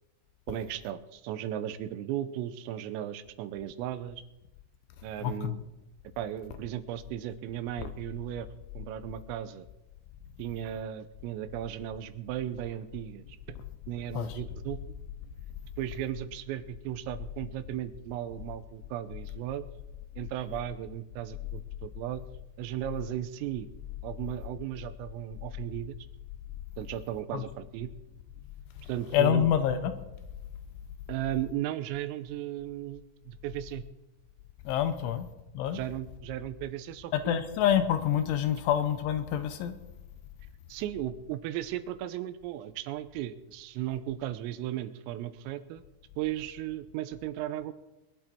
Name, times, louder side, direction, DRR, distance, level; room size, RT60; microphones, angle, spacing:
voice 1, 0.5-4.2 5.0-5.6 6.2-8.5 8.7-9.7 10.4-13.6 13.9-14.8 15.8-19.7 20.2-22.3 22.6-23.7 24.0-25.9 26.8-27.9 28.8-29.5 31.1-33.8 35.0-35.2 35.7-37.4 40.7-45.8 46.2-47.7, right 12 dB, 90° right, 12 dB, 3.5 m, -36 dB
voice 2, 5.2-5.6 14.1-14.4 27.3-27.4 29.1-30.0 34.7-35.3 35.5-35.8 37.1-39.7, left 10 dB, 80° left, 9 dB, 3.1 m, -27 dB
22.0 x 11.5 x 4.5 m, 0.99 s
omnidirectional pair, 5.9 m